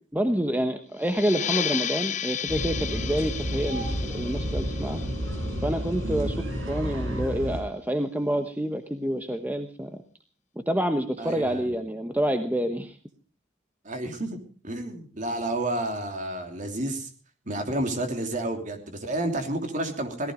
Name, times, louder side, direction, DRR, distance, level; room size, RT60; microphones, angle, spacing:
voice 1, 0.1-5.0 5.6-10.0 10.7-13.0, equal, 10° right, 7 dB, 1.0 m, -28 dB
sound 1, 1.0-6.3, left 9 dB, 35° left, 0.7 m, -33 dB
sound 2, 2.5-7.6, equal, 85° right, 5.2 m, -31 dB
voice 2, 6.0-6.3 11.2-11.7 13.8-14.4 14.6-17.1 17.5-20.3, right 1 dB, 40° right, 5 dB, 3.0 m, -30 dB
17.5 x 15.0 x 5.0 m, 0.41 s
head